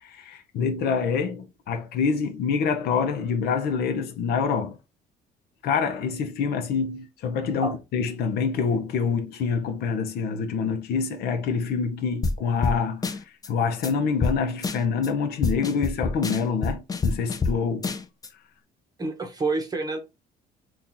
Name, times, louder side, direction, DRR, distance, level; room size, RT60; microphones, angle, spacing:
voice 1, 0.0-4.8 5.6-17.9, left 5 dB, 70° left, 0.7 m, -26 dB
sound 1, 12.2-12.4 12.6-12.8 13.0-13.5 13.8-13.9 14.2-14.3 14.6-15.1 15.4-17.5 17.8-18.3, left 4 dB, 20° left, 0.5 m, -26 dB
voice 2, 19.0-20.0, right 3 dB, 20° right, 0.8 m, -28 dB
2.8 x 2.4 x 3.7 m
cardioid pair, 110°, 17 cm